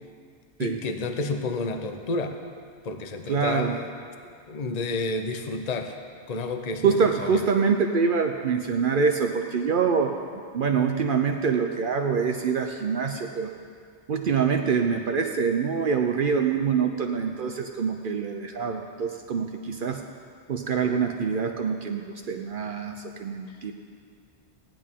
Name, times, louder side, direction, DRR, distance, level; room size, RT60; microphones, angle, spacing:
voice 1, 0.6-2.4 2.8-3.9 4.5-6.0 6.3-7.5 23.5-23.6, left 3 dB, 45° left, 6 dB, 0.8 m, -30 dB
voice 2, 3.3-3.7 6.8-13.5 14.1-20.0 20.5-23.7, right 6 dB, 60° right, 4 dB, 0.8 m, -25 dB
17.0 x 10.5 x 3.7 m, 2.1 s
omnidirectional pair, 1.1 m